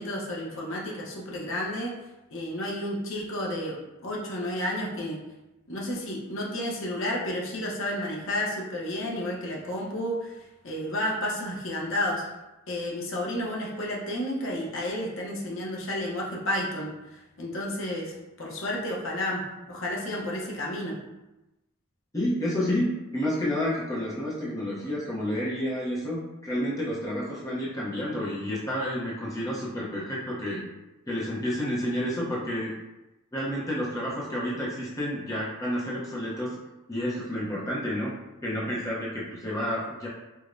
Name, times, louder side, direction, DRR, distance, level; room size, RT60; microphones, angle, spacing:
voice 1, 0.0-1.9 2.3-3.8 4.0-5.2 5.7-10.4 10.6-12.2 12.7-21.0, left 1 dB, 65° left, -3 dB, 0.8 m, -31 dB
voice 2, 22.1-30.6 31.1-32.7 33.3-36.6 36.9-38.1 38.4-40.1, equal, 15° left, -7 dB, 0.7 m, -30 dB
4.8 x 2.1 x 2.5 m, 1.0 s
head